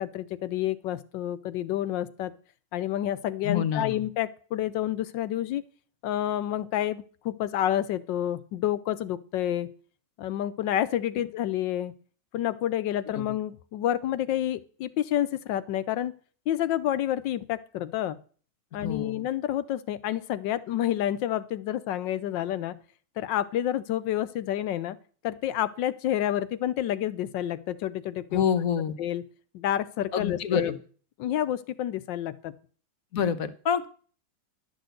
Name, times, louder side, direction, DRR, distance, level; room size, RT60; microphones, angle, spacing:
voice 1, 0.0-2.3 2.7-5.7 6.0-9.7 10.2-11.9 12.3-16.1 16.5-18.2 18.7-22.8 23.2-25.0 25.2-28.5 29.0-29.2 29.5-30.8 31.2-32.5, left 12 dB, 85° left, 15 dB, 1.4 m, -29 dB
voice 2, 3.4-4.0 13.1-13.2 18.8-19.2 28.3-28.9 30.1-30.8 33.1-33.9, left 7 dB, 55° left, 12 dB, 1.2 m, -27 dB
12.0 x 6.4 x 7.9 m, 0.42 s
omnidirectional pair, 2.0 m